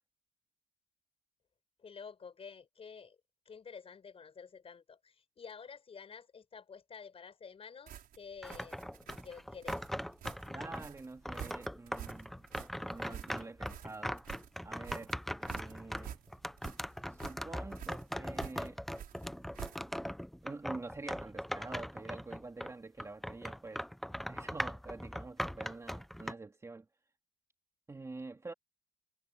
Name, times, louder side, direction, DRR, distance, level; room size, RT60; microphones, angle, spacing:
voice 1, 1.8-3.2 3.5-8.8 9.2-9.8, left 6 dB, 35° left, 5.7 m, -50 dB
sound 1, 7.9-20.1, right 10 dB, 60° right, 5.8 m, -49 dB
sound 2, 8.4-10.9 11.2-22.7 23.0-26.3, equal, ahead, 0.6 m, -40 dB
voice 2, 10.5-12.4 12.8-14.2 14.6-15.1 15.4-16.2 17.1-18.8 20.4-23.9 24.3-26.9 27.9-28.5, right 3 dB, 15° right, 2.2 m, -47 dB
cardioid pair, 110°, 17 cm